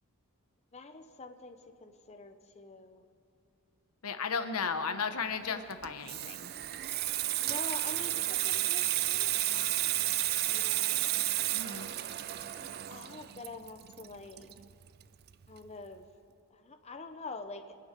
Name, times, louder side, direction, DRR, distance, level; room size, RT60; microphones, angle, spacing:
voice 1, 0.7-3.0 7.4-11.2 12.5-14.5 15.5-16.1 16.5-17.7, left 3 dB, 30° left, 6 dB, 0.7 m, -46 dB
voice 2, 4.0-6.5 11.5-11.9, left 5 dB, 80° left, 9 dB, 1.0 m, -35 dB
Water tap faucet / Sink (filling or washing), 5.7-15.0 15.3-15.6, right 15 dB, 45° right, 0.4 m, -32 dB
25.5 x 9.5 x 5.2 m, 2.7 s
head